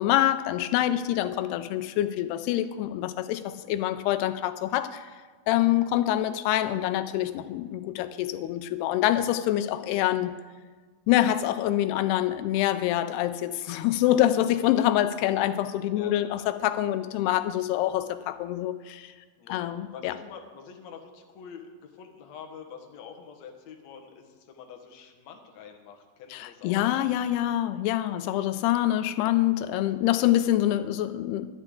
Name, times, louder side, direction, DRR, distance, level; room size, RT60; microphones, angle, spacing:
voice 1, 0.0-5.1 5.5-10.4 11.1-19.1 19.5-20.1 26.3-31.5, left 13 dB, 85° left, 11 dB, 2.6 m, -26 dB
voice 2, 15.9-16.5 19.4-26.9, left 6 dB, 60° left, 2 dB, 2.1 m, -46 dB
22.5 x 10.5 x 3.8 m, 1.4 s
omnidirectional pair, 4.6 m